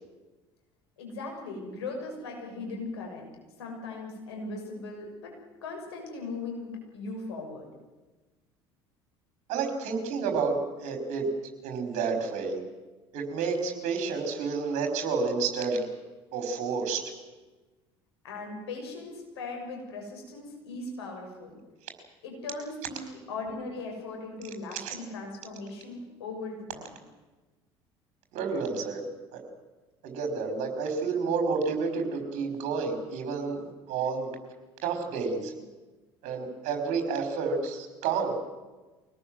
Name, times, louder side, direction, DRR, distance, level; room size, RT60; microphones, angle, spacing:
voice 1, 1.0-3.3 3.6-5.3 5.6-7.7 18.2-21.6 22.2-26.9, left 3 dB, 75° left, 1 dB, 6.6 m, -38 dB
voice 2, 9.5-11.3 11.6-12.6 13.1-15.8 16.3-17.0 24.8-24.9 28.3-29.0 29.3-29.4 30.0-34.4 34.8-35.5 36.2-38.4, right 5 dB, 60° right, 5 dB, 5.3 m, -30 dB
24.5 x 18.5 x 7.8 m, 1.2 s
hypercardioid pair, 65°, 14 cm